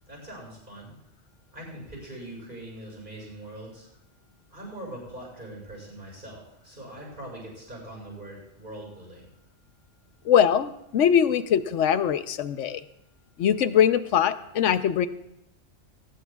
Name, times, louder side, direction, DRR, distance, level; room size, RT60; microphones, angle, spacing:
voice 1, 0.1-0.9 1.5-3.9 4.5-9.3, right 1 dB, 45° right, -2 dB, 6.9 m, -42 dB
voice 2, 10.2-12.8 13.4-15.1, left 9 dB, 85° left, 11 dB, 1.1 m, -22 dB
23.0 x 17.5 x 2.4 m, 0.81 s
omnidirectional pair, 1.2 m